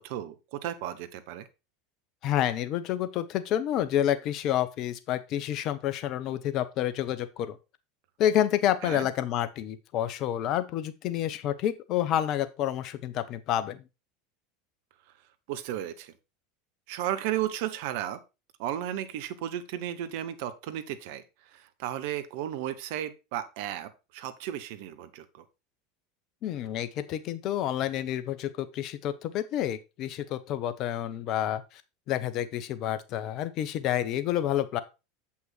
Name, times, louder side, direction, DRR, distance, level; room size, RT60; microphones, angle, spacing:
voice 1, 0.0-1.5 8.8-9.1 15.5-16.1 16.9-18.2 18.6-25.4, right 11 dB, 60° right, 12 dB, 0.9 m, -34 dB
voice 2, 2.2-7.6 8.2-13.8 26.4-31.8 32.1-34.8, left 11 dB, 45° left, 12 dB, 0.9 m, -29 dB
7.9 x 5.7 x 4.4 m, 0.28 s
figure-of-eight pair, 80°, 0 cm